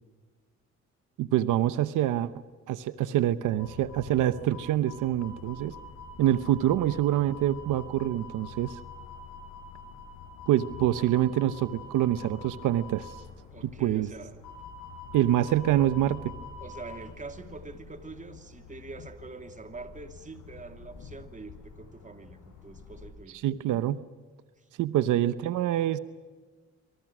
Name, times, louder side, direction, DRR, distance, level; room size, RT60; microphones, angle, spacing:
voice 1, 1.2-2.3 2.7-5.7 6.2-8.8 10.5-13.1 13.6-14.1 15.1-16.3 23.4-24.0 24.8-26.0, right 12 dB, 85° right, 14 dB, 0.9 m, -26 dB
sound 1, 3.6-23.1, left 4 dB, 85° left, 7.8 m, -46 dB
voice 2, 13.5-14.3 16.6-23.4 24.6-24.7 25.0-25.1, right 3 dB, 25° right, 7 dB, 2.8 m, -44 dB
26.5 x 26.0 x 6.1 m, 1.4 s
cardioid pair, 90°, 30 cm